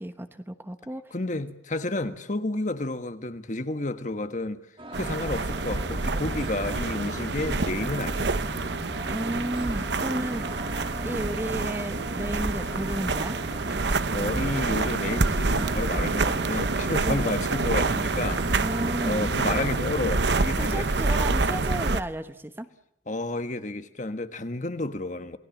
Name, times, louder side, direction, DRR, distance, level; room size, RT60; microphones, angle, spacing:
voice 1, 0.0-1.1 9.1-10.5 11.0-13.4 17.0-17.3 18.6-19.3 20.6-22.7, right 1 dB, 10° right, 1.1 m, -33 dB
voice 2, 1.1-4.6 4.9-8.3 13.9-18.4 19.0-20.9 23.1-25.4, left 2 dB, 40° left, 1.4 m, -31 dB
sound 1, 4.8-19.9, right 1 dB, 30° right, 1.9 m, -41 dB
sound 2, 4.9-22.0, right 3 dB, 65° right, 1.0 m, -27 dB
Musical instrument, 5.8-20.6, left 1 dB, 90° left, 2.9 m, -43 dB
28.5 x 19.5 x 7.4 m
head